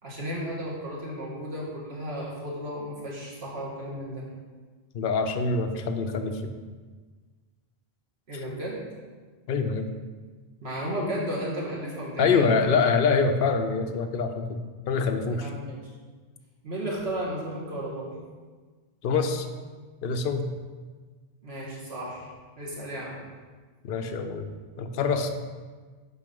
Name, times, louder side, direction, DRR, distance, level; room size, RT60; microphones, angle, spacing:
voice 1, 0.0-4.2 8.3-8.8 10.6-12.4 15.3-15.8 16.6-18.2 21.4-23.2, equal, 75° right, -4 dB, 2.0 m, -34 dB
voice 2, 4.9-6.5 9.5-9.9 12.2-15.5 19.0-19.5 20.0-20.5 23.8-24.5 24.8-25.3, left 4 dB, 60° left, 5 dB, 0.8 m, -25 dB
6.7 x 4.6 x 5.3 m, 1.4 s
omnidirectional pair, 1.1 m